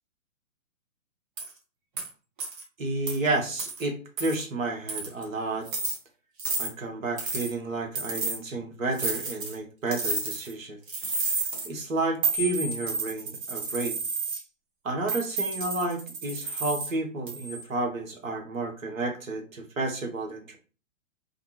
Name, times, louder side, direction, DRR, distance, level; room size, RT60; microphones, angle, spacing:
sound 1, 1.4-1.5 2.0-2.1 2.4-2.6 3.1-3.2 3.6-3.8 4.2-4.4 4.9-5.2 5.7-6.0 6.4-6.7 7.2-7.5 8.0-8.4 9.0-9.5 9.9-10.5 10.9-11.7 12.2-14.4 15.1-16.9 17.3-17.6, right 3 dB, 40° right, 0.9 m, -31 dB
voice 1, 2.8-5.7 6.6-10.8 11.6-14.0 14.8-20.6, right 2 dB, 75° right, 3 dB, 0.9 m, -31 dB
2.6 x 2.2 x 2.7 m, 0.37 s
figure-of-eight pair, 120°, 40 cm